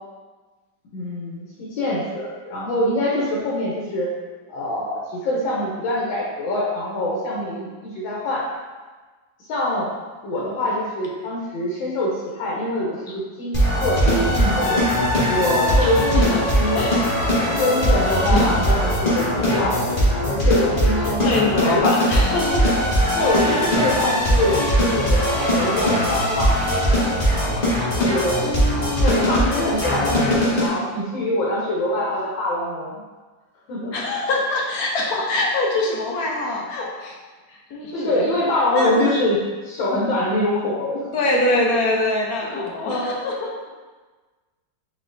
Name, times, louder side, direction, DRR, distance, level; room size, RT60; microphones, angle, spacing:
voice 1, 0.9-4.1 4.5-8.5 9.5-9.9 10.2-14.8 15.3-16.0 16.5-16.8 17.6-19.3 19.5-19.8 20.3-21.3 21.6-21.9 23.1-26.6 27.9-28.4 28.9-33.0 33.7-33.9 37.9-39.4 39.6-41.0 42.4-43.2, left 1 dB, 85° left, -5 dB, 1.6 m, -24 dB
Nohe Fero, 13.5-30.7, equal, 35° left, 1.0 m, -20 dB
voice 2, 15.8-16.4 16.7-17.0 18.3-18.6 21.0-22.6 23.4-23.6 27.7-28.1 28.4-29.4 33.9-37.2 37.5-38.3 38.7-39.1 41.1-43.7, left 2 dB, 65° left, -1 dB, 1.0 m, -24 dB
4.1 x 4.1 x 2.6 m, 1.3 s
omnidirectional pair, 2.0 m